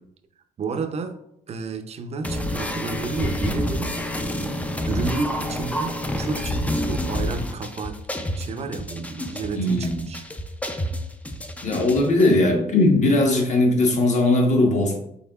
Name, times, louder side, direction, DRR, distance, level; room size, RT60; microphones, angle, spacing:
voice 1, 0.6-1.2 1.5-4.0 4.4-4.6 4.8-10.3, right 4 dB, 40° right, 7 dB, 0.5 m, -31 dB
sound 1, 2.2-12.3, left 1 dB, 10° left, 0.3 m, -28 dB
voice 2, 9.5-10.0 11.6-15.0, left 2 dB, 50° left, 1 dB, 1.1 m, -19 dB
5.4 x 3.7 x 2.3 m, 0.72 s
cardioid pair, 115°, 16 cm